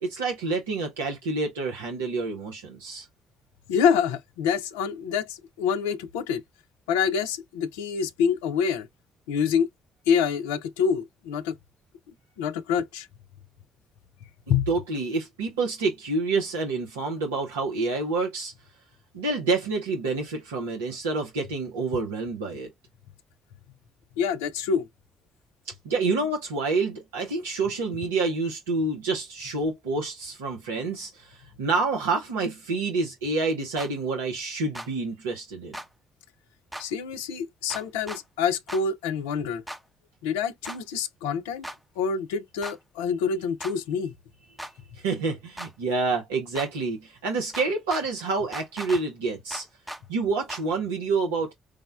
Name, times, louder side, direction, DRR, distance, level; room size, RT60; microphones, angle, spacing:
voice 1, 0.0-3.1 14.7-18.5 19.1-22.7 25.7-35.8 44.9-49.7 50.1-51.5, right 3 dB, 75° right, 0.6 m, -28 dB
voice 2, 3.7-6.4 6.9-8.9 9.3-9.7 10.1-11.5 12.4-13.1 14.5-14.6 24.2-24.9 36.8-39.6 40.2-41.7 42.0-44.1, left 7 dB, 70° left, 0.4 m, -26 dB
sound 1, 33.8-33.9 34.7-34.9 35.7-35.9 36.7-36.9 37.7-38.2 38.7-38.8 39.7-39.8 40.7-40.8 41.6-41.8 42.6-42.8 43.6-43.7 44.6-44.7 45.6-45.7 46.6-46.7 47.5-48.0 48.5-49.0 49.5-50.0 50.5-50.6, equal, 10° right, 0.7 m, -37 dB
4.7 x 2.1 x 2.3 m
figure-of-eight pair, 45°, 0 cm